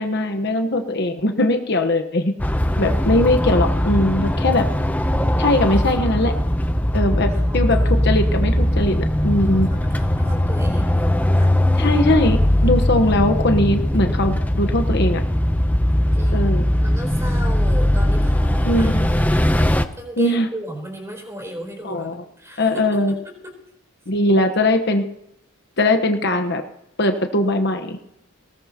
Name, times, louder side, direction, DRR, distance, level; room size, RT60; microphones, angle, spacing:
voice 1, 0.0-2.3 2.8-4.7 5.4-6.3 6.9-9.7 11.8-12.4 12.6-15.2 16.3-16.7 18.6-19.1 20.2-20.5 21.8-22.2 22.6-23.1 24.1-25.0 25.8-26.6 27.0-28.0, left 1 dB, 50° left, 6 dB, 1.2 m, -20 dB
sound 1, 2.4-19.8, left 1 dB, 10° left, 0.6 m, -19 dB
voice 2, 2.8-3.3 7.3-7.9 9.5-11.5 16.1-19.1 20.0-22.1 22.4-23.5, equal, 15° right, 2 dB, 3.9 m, -35 dB
20.0 x 17.5 x 3.0 m, 0.80 s
head